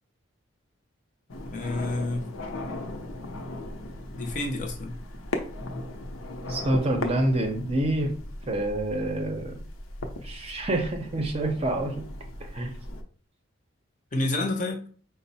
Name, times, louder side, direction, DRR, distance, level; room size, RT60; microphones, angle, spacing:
sound 1, 1.3-13.0, left 1 dB, 80° left, 0.7 m, -37 dB
voice 1, 1.5-2.3 4.1-4.9 14.1-14.8, left 2 dB, 35° left, 0.6 m, -29 dB
voice 2, 6.5-8.1 8.5-9.6 10.2-12.0 12.4-12.8, right 1 dB, 30° right, 0.5 m, -27 dB
5.1 x 2.0 x 4.0 m
head